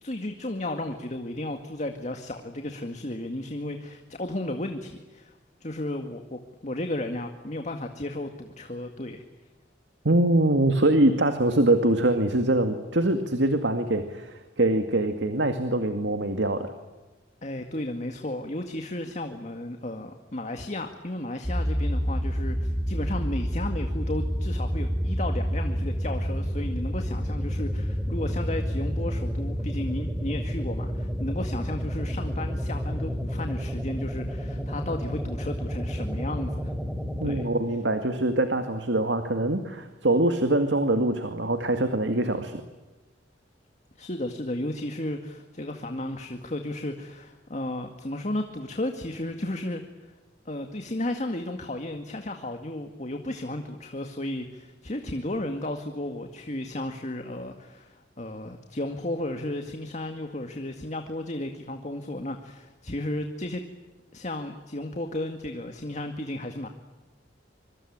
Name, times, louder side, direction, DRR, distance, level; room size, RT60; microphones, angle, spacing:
voice 1, 0.0-5.3 5.6-9.2 17.4-36.7 37.2-37.5 44.0-49.8 50.5-63.6 64.1-66.7, left 1 dB, 40° left, 6 dB, 2.0 m, -34 dB
voice 2, 10.0-16.7 37.2-42.6, right 1 dB, 80° right, 7 dB, 2.2 m, -24 dB
sound 1, 21.4-37.5, equal, 5° right, 2.9 m, -29 dB
25.5 x 24.5 x 8.8 m, 1.2 s
head